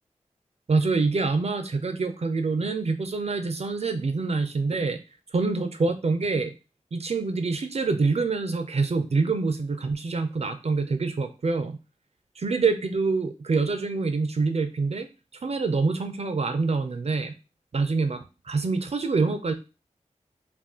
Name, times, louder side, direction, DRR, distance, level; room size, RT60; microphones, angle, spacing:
voice 1, 0.7-5.0 5.3-6.5 6.9-11.8 12.4-15.1 15.4-17.3 17.7-19.5, right 4 dB, 55° right, 7 dB, 0.5 m, -26 dB
2.4 x 2.4 x 3.6 m, 0.30 s
cardioid pair, 50°, 13 cm